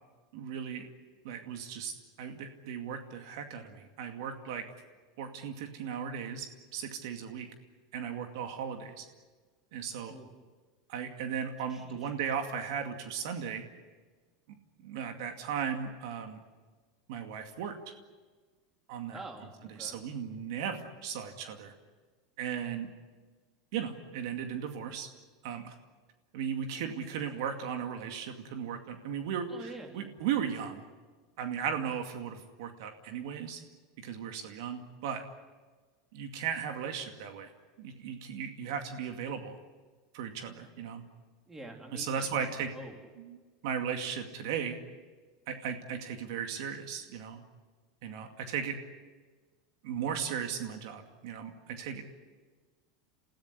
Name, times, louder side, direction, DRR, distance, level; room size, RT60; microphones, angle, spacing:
voice 1, 0.3-0.9 1.2-4.7 5.2-7.5 7.9-9.0 9.7-10.1 10.9-13.6 14.8-16.4 17.1-17.8 18.9-19.2 19.8-21.7 22.4-22.9 23.7-25.1 25.4-25.7 26.3-30.8 31.4-33.6 34.0-35.2 36.1-37.5 37.8-39.6 40.1-41.0 41.9-42.7 43.2-43.4 43.6-44.8 45.5-47.4 48.0-48.8 49.8-52.0, right 7 dB, 70° right, 5 dB, 2.3 m, -36 dB
voice 2, 11.7-12.1 19.1-20.0 29.5-30.1 41.5-42.5 42.7-42.9, right 2 dB, 15° right, 2 dB, 3.8 m, -46 dB
29.0 x 16.0 x 9.9 m, 1.4 s
supercardioid pair, 145°, 2 cm